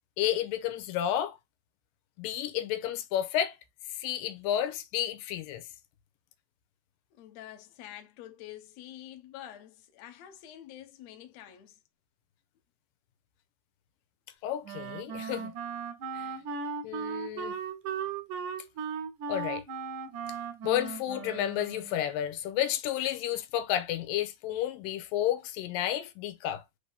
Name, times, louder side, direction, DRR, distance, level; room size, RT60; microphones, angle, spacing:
voice 1, 0.2-1.4 2.2-3.6 3.9-5.6 14.4-15.5 16.1-16.4 16.8-17.6 19.3-19.6 20.6-26.6, left 11 dB, 85° left, 2.3 m, -31 dB
voice 2, 7.1-11.8, left 12 dB, 70° left, 1.7 m, -47 dB
Wind instrument woodwind instrument, 14.6-22.0, right 6 dB, 75° right, 2.1 m, -37 dB
5.2 x 2.7 x 3.4 m
omnidirectional pair, 3.9 m